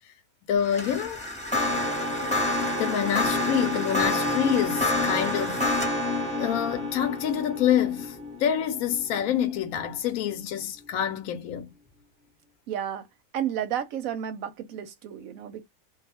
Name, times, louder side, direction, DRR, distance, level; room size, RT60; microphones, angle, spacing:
voice 1, 0.5-1.2 2.2-5.7 6.2-11.7, left 9 dB, 75° left, 1.0 m, -27 dB
sound 1, 0.6-9.9, left 2 dB, 5° left, 0.9 m, -28 dB
voice 2, 12.7-13.1 13.3-15.6, right 9 dB, 70° right, 1.0 m, -32 dB
2.4 x 2.4 x 4.0 m
omnidirectional pair, 1.6 m